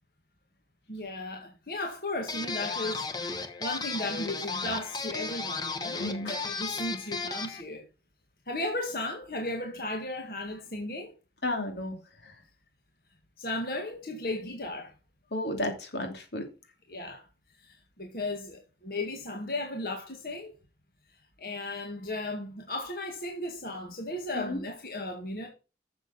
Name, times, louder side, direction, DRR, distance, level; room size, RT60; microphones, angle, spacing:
voice 1, 0.9-3.0 3.6-7.8 8.5-11.1 13.4-14.9 16.9-17.2 17.6-20.5 21.4-25.5, left 2 dB, 55° left, 1.9 m, -35 dB
sound 1, 2.3-7.6, left 4 dB, 25° left, 1.1 m, -34 dB
voice 2, 6.0-6.3 11.4-12.0 15.3-16.4 24.3-24.6, left 1 dB, 80° left, 2.9 m, -32 dB
11.5 x 7.1 x 4.2 m
head